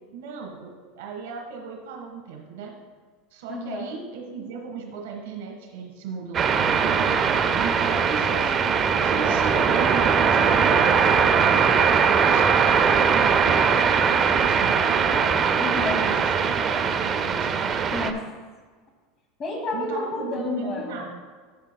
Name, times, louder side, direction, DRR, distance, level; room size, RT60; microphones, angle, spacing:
voice 1, 0.1-0.7 1.0-2.7 3.3-8.7 8.9-15.4 16.0-17.6 19.7-21.1, right 5 dB, 85° right, 1 dB, 1.4 m, -36 dB
voice 2, 3.5-3.9 15.6-16.0 17.9-18.2 19.4-21.1, left 3 dB, 30° left, 0 dB, 2.2 m, -30 dB
sound 1, 6.3-18.1, right 6 dB, 25° right, 0.5 m, -20 dB
13.0 x 7.5 x 2.3 m, 1.5 s
supercardioid pair, 145°, 0 cm